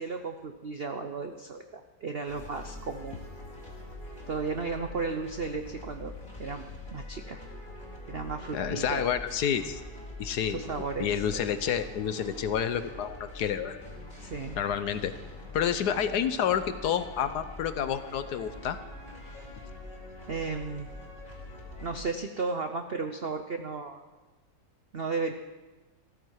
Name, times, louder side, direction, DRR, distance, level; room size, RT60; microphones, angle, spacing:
voice 1, 0.0-3.2 4.3-6.1 6.4-7.4 8.1-9.1 10.4-11.2 14.2-14.6 20.3-20.9 21.8-24.0 24.9-25.3, right 4 dB, 65° right, 6 dB, 0.6 m, -34 dB
sound 1, 2.3-22.0, left 2 dB, 25° left, 3.2 m, -44 dB
voice 2, 8.5-9.8 10.2-10.6 11.0-13.8 14.6-15.1 15.5-18.8, left 8 dB, 65° left, 11 dB, 1.2 m, -29 dB
15.0 x 13.5 x 4.7 m, 1.2 s
omnidirectional pair, 2.0 m